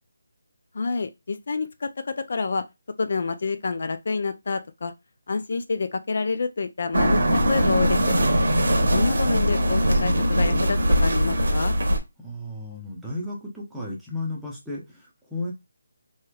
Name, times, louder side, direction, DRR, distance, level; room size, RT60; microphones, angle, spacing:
voice 1, 0.7-2.7 3.0-4.9 5.3-8.1 8.9-11.8, left 4 dB, 55° left, 0.3 m, -28 dB
sound 1, 6.9-12.0, equal, 70° right, 0.8 m, -21 dB
voice 2, 12.2-15.5, left 2 dB, 5° right, 0.7 m, -34 dB
3.1 x 2.9 x 2.3 m
figure-of-eight pair, 165°, 0 cm